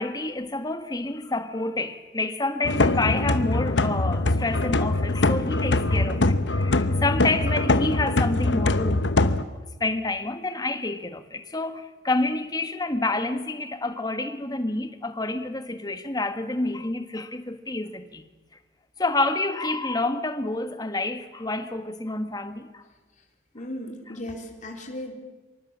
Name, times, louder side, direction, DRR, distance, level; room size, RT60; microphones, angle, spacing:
voice 1, 0.0-9.0 9.8-18.2 19.0-22.8, left 2 dB, 20° left, 1.5 m, -28 dB
sound 1, 2.6-9.4, left 2 dB, 70° left, 1.1 m, -23 dB
voice 2, 23.5-25.1, left 1 dB, 45° left, 4.0 m, -36 dB
25.5 x 24.0 x 7.5 m
head